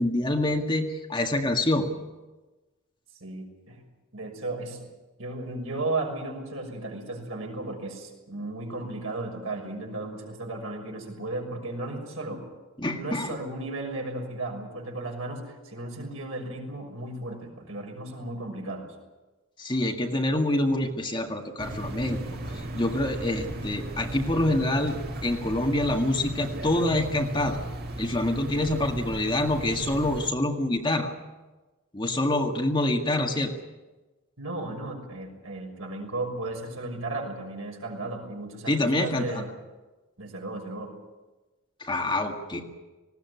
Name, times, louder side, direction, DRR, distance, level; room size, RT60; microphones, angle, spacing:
voice 1, 0.0-1.9 12.8-13.4 19.6-25.0 25.2-27.6 28.0-31.1 31.9-33.5 38.7-39.4 41.8-42.6, left 1 dB, 20° left, 2 dB, 1.9 m, -26 dB
voice 2, 3.2-3.8 4.1-4.8 5.2-12.5 12.9-18.9 34.4-39.5 40.2-40.9, right 2 dB, 75° right, 2 dB, 6.1 m, -35 dB
sound 1, 21.6-30.3, right 1 dB, 45° right, 1.9 m, -36 dB
19.5 x 17.5 x 9.6 m, 1.2 s
head